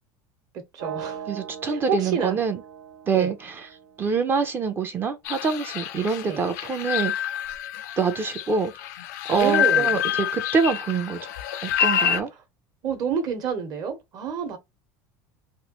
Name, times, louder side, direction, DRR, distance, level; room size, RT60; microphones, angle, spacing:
voice 1, 0.7-1.3 1.7-2.4 3.1-3.3 6.3-6.4 9.3-9.9 12.8-14.6, right 6 dB, 45° right, 1.1 m, -28 dB
sound 1, 0.8-4.7, right 8 dB, 90° right, 0.6 m, -40 dB
voice 2, 1.3-2.6 3.1-3.7 4.0-7.3 8.0-8.7 9.3-11.3 11.6-12.3, right 5 dB, 25° right, 0.5 m, -25 dB
sound 2, 5.3-12.2, left 9 dB, 90° left, 0.5 m, -27 dB
3.1 x 2.3 x 2.9 m
supercardioid pair, 140°, 9 cm